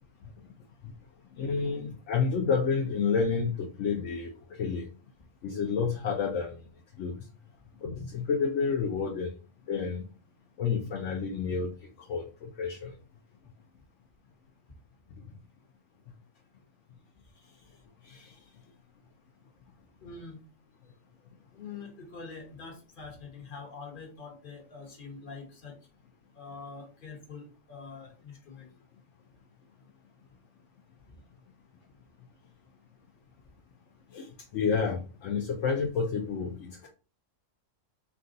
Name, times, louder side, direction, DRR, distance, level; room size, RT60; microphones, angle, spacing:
voice 1, 1.4-4.9 5.4-6.6 7.0-7.2 7.8-9.3 9.7-10.1 10.6-11.7 12.0-12.9 18.1-18.3 34.1-34.3 34.5-36.9, left 5 dB, 70° left, 1 dB, 0.9 m, -30 dB
voice 2, 20.0-20.4 21.5-25.8 26.3-28.7, left 4 dB, 40° left, -1 dB, 1.3 m, -45 dB
4.5 x 2.3 x 3.8 m, 0.34 s
omnidirectional pair, 1.3 m